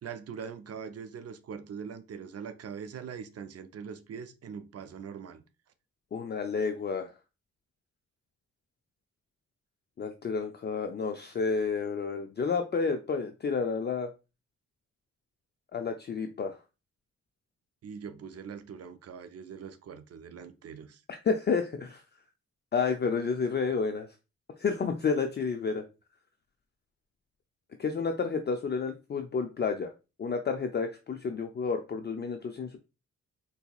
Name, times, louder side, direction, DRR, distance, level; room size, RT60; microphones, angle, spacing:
voice 1, 0.0-5.4 17.8-21.0, right 6 dB, 55° right, 0.5 m, -42 dB
voice 2, 6.1-7.1 10.0-14.1 15.7-16.6 21.1-22.0 22.7-24.1 24.6-25.8 27.8-29.9 30.2-32.8, left 5 dB, 35° left, 0.4 m, -30 dB
3.9 x 2.7 x 2.3 m
cardioid pair, 65°, 29 cm